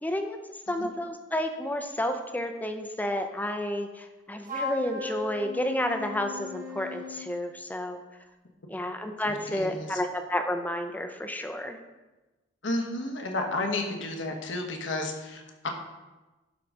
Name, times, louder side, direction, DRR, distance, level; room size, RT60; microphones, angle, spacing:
voice 1, 0.0-0.4 0.7-8.0 8.7-11.8, left 1 dB, 10° left, 6 dB, 0.5 m, -31 dB
Wind instrument woodwind instrument, 4.4-7.3, left 3 dB, 40° right, 1.5 m, -37 dB
voice 2, 9.2-10.0 12.6-15.7, left 2 dB, 70° left, 3 dB, 1.2 m, -32 dB
11.5 x 3.9 x 4.8 m, 1.1 s
head